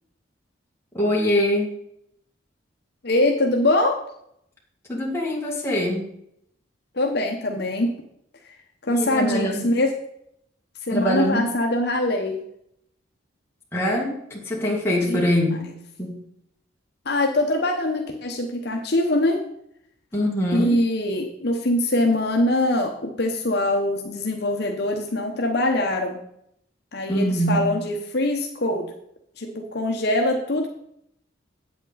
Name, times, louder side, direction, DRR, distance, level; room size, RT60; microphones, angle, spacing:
voice 1, 0.9-1.7 4.9-6.0 8.9-9.6 10.9-11.5 13.7-15.6 16.0-16.2 20.1-20.8 27.1-27.7, equal, 10° left, -4 dB, 2.2 m, -23 dB
voice 2, 3.0-4.0 6.9-7.9 8.8-9.9 10.9-12.4 14.9-15.3 17.1-19.4 20.5-26.2 26.9-28.9 29.4-30.7, left 1 dB, 55° left, 2 dB, 0.9 m, -23 dB
8.2 x 8.2 x 4.0 m, 0.73 s
head